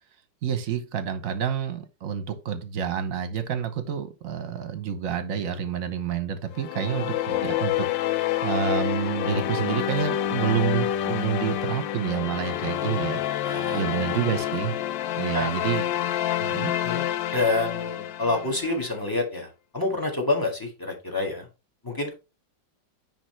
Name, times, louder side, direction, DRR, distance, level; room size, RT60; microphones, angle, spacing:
voice 1, 0.4-13.2 13.5-14.7 15.2-15.9 16.4-16.7, right 8 dB, 55° right, 1.3 m, -29 dB
sound 1, 6.5-18.9, left 12 dB, 85° left, 1.4 m, -28 dB
voice 2, 13.4-14.0 15.3-15.5 16.7-21.5 21.8-22.1, left 2 dB, 10° left, 1.7 m, -28 dB
10.0 x 3.9 x 3.2 m
omnidirectional pair, 2.0 m